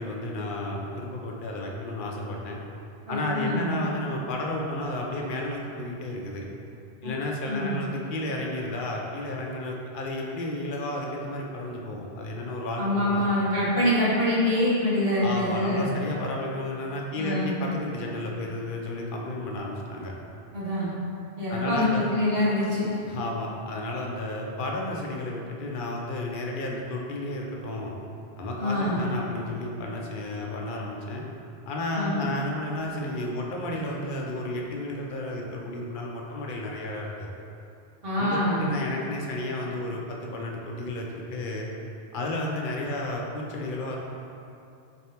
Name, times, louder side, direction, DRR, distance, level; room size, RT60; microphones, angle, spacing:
voice 1, 0.0-2.6 3.1-6.5 7.0-13.2 15.2-20.1 21.5-22.0 23.1-27.9 28.4-31.2 31.7-37.3 38.1-41.7 42.1-44.0, left 1 dB, 60° left, -1 dB, 0.6 m, -32 dB
voice 2, 3.1-3.7 7.0-7.1 7.5-7.7 12.8-16.0 17.1-17.5 20.5-20.9 21.4-22.9 28.6-29.0 31.9-32.3 38.0-38.7, left 1 dB, 60° right, -8 dB, 1.3 m, -25 dB
4.3 x 3.3 x 2.8 m, 2.7 s
omnidirectional pair, 1.1 m